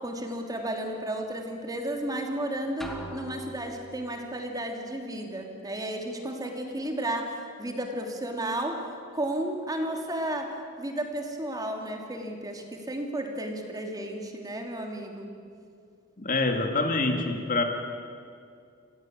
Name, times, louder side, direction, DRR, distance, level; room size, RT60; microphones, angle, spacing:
voice 1, 0.0-8.8 9.1-10.5 10.8-15.3, right 1 dB, 20° right, 2 dB, 2.9 m, -33 dB
sound 1, 2.8-4.3, equal, ahead, 2.6 m, -41 dB
voice 2, 16.2-17.6, left 3 dB, 45° left, 4 dB, 2.2 m, -26 dB
29.0 x 16.5 x 8.9 m, 2.3 s
head